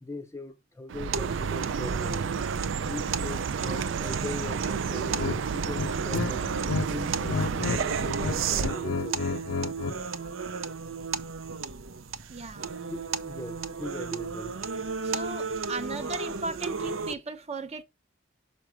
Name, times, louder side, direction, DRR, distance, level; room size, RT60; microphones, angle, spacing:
voice 1, 0.0-2.3 2.8-6.5 6.9-9.4 12.8-14.6 15.3-15.4, left 1 dB, 15° left, 0.6 m, -40 dB
Chirp tweet, 0.9-8.7, right 6 dB, 65° right, 0.4 m, -31 dB
sound 1, 1.1-17.1, right 5 dB, 85° right, 0.7 m, -35 dB
sound 2, 5.1-5.4 5.7-6.9 7.1-7.8 8.1-10.0, left 4 dB, 75° left, 0.5 m, -30 dB
voice 2, 12.3-12.7 15.0-17.8, right 3 dB, 30° right, 0.7 m, -36 dB
6.2 x 5.5 x 4.7 m
head